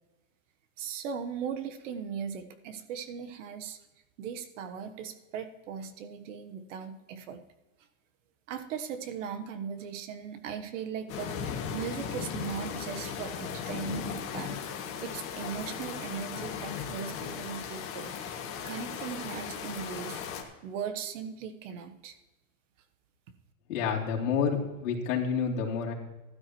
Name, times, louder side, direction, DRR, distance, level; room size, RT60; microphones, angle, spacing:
voice 1, 0.8-3.8 4.2-7.4 8.5-18.2 18.6-20.2 20.6-22.2, right 7 dB, 60° right, 9 dB, 1.4 m, -38 dB
sound 1, 11.1-20.4, left 7 dB, 30° left, 1.7 m, -37 dB
voice 2, 23.7-25.9, left 6 dB, 65° left, -2 dB, 3.3 m, -29 dB
15.0 x 12.5 x 3.1 m, 1.1 s
supercardioid pair, 145°, 43 cm